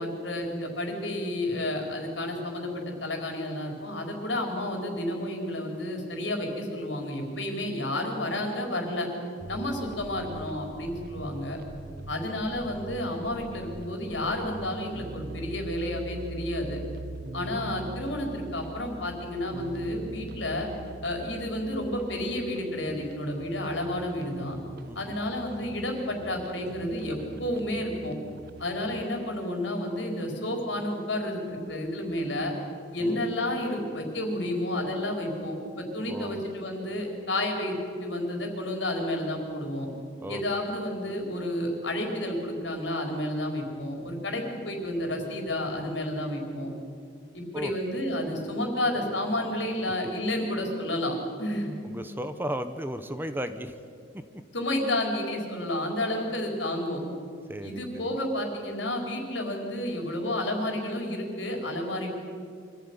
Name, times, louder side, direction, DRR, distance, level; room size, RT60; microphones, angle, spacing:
voice 1, 0.0-9.1 9.5-11.6 12.1-16.8 17.3-20.7 21.0-24.6 24.9-28.2 28.6-32.5 32.9-37.7 38.0-39.9 40.3-46.7 47.3-51.7 54.5-57.0 57.6-62.1, left 1 dB, 80° left, 2 dB, 4.6 m, -31 dB
sound 1, 9.4-29.0, right 2 dB, 55° right, 0.8 m, -43 dB
voice 2, 24.8-25.2 33.0-33.3 36.1-36.4 40.2-40.6 47.5-47.7 51.8-53.7 57.5-58.2, equal, 10° right, 9 dB, 1.0 m, -35 dB
25.0 x 15.0 x 9.7 m, 2.3 s
head